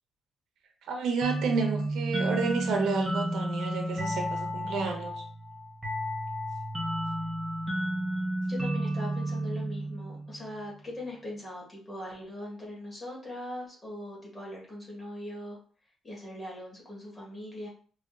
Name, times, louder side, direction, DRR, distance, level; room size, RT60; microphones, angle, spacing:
voice 1, 0.9-5.2, right 4 dB, 80° right, 3 dB, 0.8 m, -30 dB
sound 1, 1.2-10.6, right 1 dB, 15° right, 0.9 m, -32 dB
voice 2, 8.5-15.6 16.0-17.7, left 1 dB, 20° left, -3 dB, 1.4 m, -40 dB
4.8 x 2.4 x 2.6 m, 0.43 s
cardioid pair, 170°, 0 cm